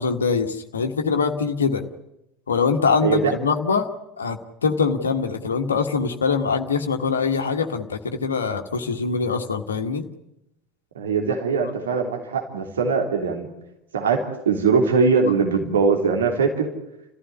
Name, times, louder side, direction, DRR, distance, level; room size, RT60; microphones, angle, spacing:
voice 1, 0.0-1.8 2.5-3.9 4.2-10.0, left 5 dB, 75° left, 5 dB, 1.6 m, -23 dB
voice 2, 3.0-3.3 10.9-13.5 13.9-16.7, right 5 dB, 70° right, 3 dB, 3.3 m, -21 dB
29.5 x 15.0 x 9.6 m, 0.88 s
figure-of-eight pair, 70°, 0 cm